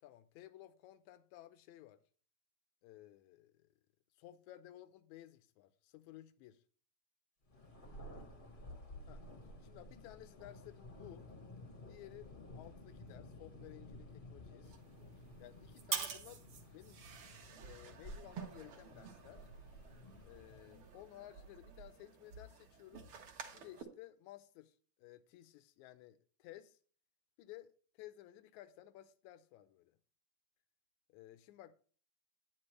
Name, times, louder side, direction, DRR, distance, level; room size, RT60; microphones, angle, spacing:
voice 1, 0.0-2.0 2.8-3.7 4.2-6.6 9.1-9.2 9.6-11.3 11.8-14.8 15.4-16.4 16.7-17.1 17.6-19.5 20.2-23.1 23.5-24.7 25.0-26.8 27.4-30.0 31.1-31.7, left 14 dB, 80° left, 2.0 m, -56 dB
Thunder, 7.5-21.1, left 1 dB, 35° left, 0.7 m, -54 dB
sound 1, 14.6-23.8, right 7 dB, 55° right, 1.7 m, -48 dB
9.7 x 9.3 x 3.2 m
omnidirectional pair, 3.4 m